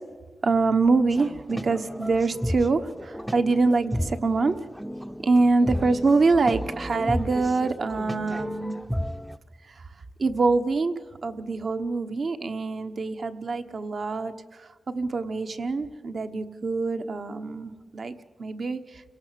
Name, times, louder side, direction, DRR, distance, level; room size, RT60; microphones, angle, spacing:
voice 1, 0.4-4.6 5.2-8.8 10.2-10.9 11.2-14.3 14.6-19.0, right 3 dB, 55° right, 8 dB, 1.3 m, -25 dB
sound 1, 1.1-9.4, equal, ahead, 0.6 m, -33 dB
30.0 x 17.5 x 7.7 m, 1.4 s
wide cardioid pair, 115°, 0 cm